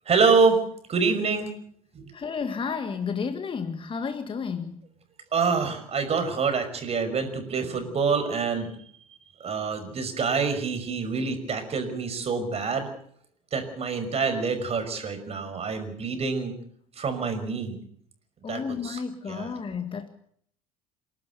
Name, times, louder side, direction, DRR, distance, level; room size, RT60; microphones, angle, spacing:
voice 1, 0.1-1.5 1.9-2.1 5.3-8.8 9.4-12.9 13.5-16.5 17.0-17.8 18.5-19.0 19.3-19.5, right 5 dB, 35° right, 8 dB, 5.8 m, -26 dB
voice 2, 2.1-4.8 18.4-20.1, left 5 dB, 30° left, 8 dB, 1.9 m, -31 dB
28.0 x 12.5 x 8.3 m, 0.64 s
hypercardioid pair, 65°, 18 cm